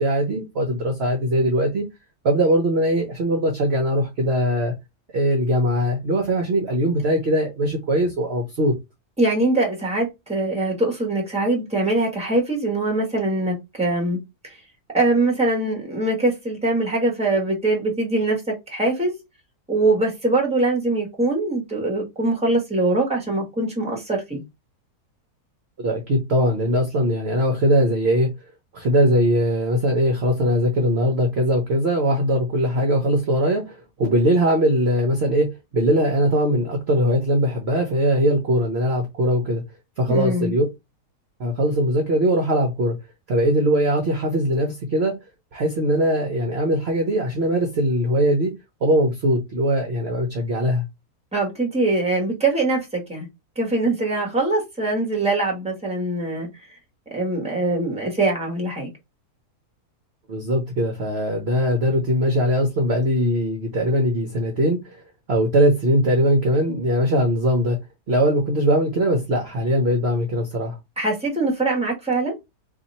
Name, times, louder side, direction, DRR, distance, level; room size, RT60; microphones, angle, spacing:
voice 1, 0.0-1.9 2.2-4.7 5.1-8.7 25.8-28.3 28.7-39.6 40.0-40.6 41.4-42.9 43.3-45.1 45.5-48.5 48.8-50.9 60.3-65.0 65.3-67.8 68.1-70.8, equal, 50° right, 0.9 m, -21 dB
voice 2, 9.2-14.2 14.4-14.6 14.9-19.1 19.7-24.4 40.1-40.5 51.3-53.3 53.5-56.5 57.1-58.9 71.0-72.3, right 2 dB, 5° right, 1.3 m, -22 dB
2.8 x 2.8 x 4.1 m
omnidirectional pair, 1.7 m